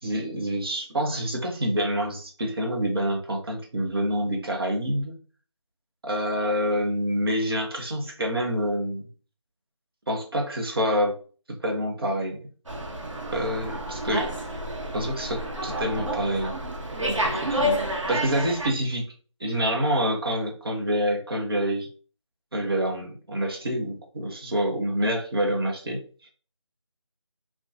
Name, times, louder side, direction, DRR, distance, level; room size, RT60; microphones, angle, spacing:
voice 1, 0.0-5.1 6.1-9.0 10.1-11.2 11.5-12.4 13.3-14.3 14.9-16.6 17.1-19.0 19.4-21.9 22.5-26.0, equal, 50° right, 1 dB, 0.7 m, -27 dB
Slam, 12.7-18.7, equal, 85° right, 0.8 m, -30 dB
2.7 x 2.2 x 2.3 m, 0.40 s
figure-of-eight pair, 165°, 16 cm